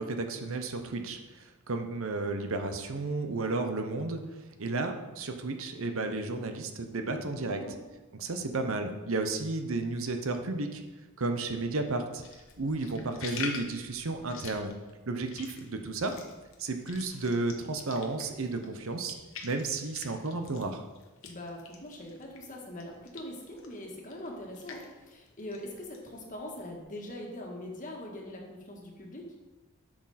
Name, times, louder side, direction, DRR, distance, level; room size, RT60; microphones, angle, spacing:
voice 1, 0.0-4.2 4.6-7.6 8.1-10.8 11.2-12.2 12.6-14.7 15.1-16.1 16.6-19.2 19.4-20.8, right 3 dB, 65° right, 6 dB, 0.8 m, -33 dB
voice 2, 6.9-7.8 21.2-29.2, left 1 dB, 35° left, -1 dB, 1.7 m, -42 dB
sound 1, 12.2-22.5 22.8-26.8, left 5 dB, 60° left, 1.2 m, -46 dB
10.0 x 6.3 x 4.2 m, 1.2 s
head